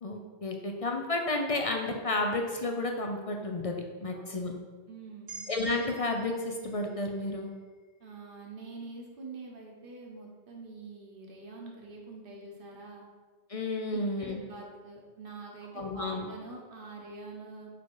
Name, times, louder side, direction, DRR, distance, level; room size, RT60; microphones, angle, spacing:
voice 1, 0.0-3.8 4.0-4.5 5.5-7.5 13.5-14.4 15.7-16.2, left 2 dB, 45° left, 3 dB, 0.5 m, -31 dB
voice 2, 4.1-4.4 4.9-5.5 8.0-13.1 13.9-17.7, right 3 dB, 55° right, -1 dB, 1.3 m, -45 dB
sound 1, 5.3-9.5, right 3 dB, 85° right, 1.7 m, -52 dB
5.1 x 4.7 x 4.7 m, 1.4 s
omnidirectional pair, 1.1 m